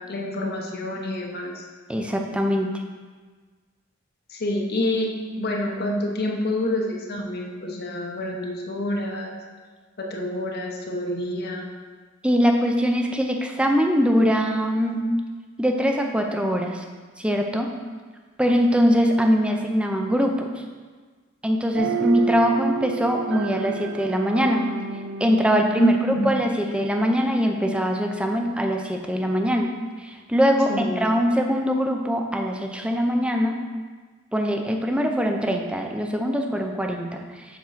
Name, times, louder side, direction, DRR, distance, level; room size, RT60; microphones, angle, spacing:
voice 1, 0.1-1.6 4.3-5.1 5.4-9.3 10.0-11.7 25.8-26.3 30.7-31.0, left 1 dB, 55° left, 0 dB, 0.9 m, -27 dB
voice 2, 1.9-2.8 12.2-15.0 15.6-16.8 17.2-17.7 18.4-20.5 21.4-24.6 25.2-25.9 26.2-29.7 30.0-33.6 34.3-37.4, equal, 5° right, 3 dB, 0.6 m, -22 dB
sound 1, 21.7-27.2, right 6 dB, 60° right, 0.3 m, -31 dB
7.3 x 3.7 x 5.8 m, 1.4 s
head